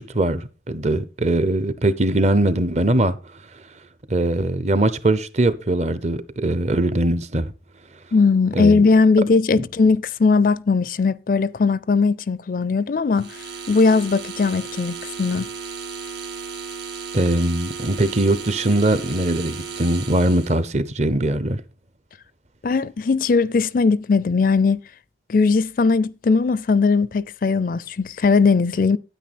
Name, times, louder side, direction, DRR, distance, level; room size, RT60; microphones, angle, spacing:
voice 1, 0.0-3.2 4.1-7.5 8.5-8.8 17.1-21.6, right 1 dB, 35° right, 0.7 m, -21 dB
voice 2, 8.1-15.5 22.6-24.8 25.3-29.0, left 4 dB, 50° left, 0.4 m, -19 dB
sound 1, 13.1-20.6, right 5 dB, 85° right, 2.1 m, -34 dB
9.2 x 9.1 x 4.2 m
head